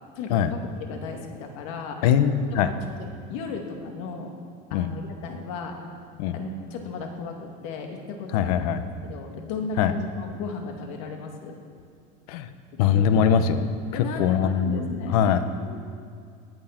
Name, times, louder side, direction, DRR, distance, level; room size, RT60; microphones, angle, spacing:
voice 1, 0.1-2.0 2.5-4.3 4.7-5.8 6.3-8.7 9.0-11.6 12.7-13.4 13.9-15.8, left 4 dB, 65° left, 3 dB, 2.3 m, -35 dB
voice 2, 2.0-2.7 4.7-4.9 6.2-6.4 8.3-8.8 9.8-9.9 12.3-12.5 12.8-13.7 13.9-14.9 15.1-15.4, left 8 dB, 80° left, 11 dB, 1.0 m, -22 dB
19.0 x 10.0 x 5.9 m, 2.3 s
cardioid pair, 165°, 19 cm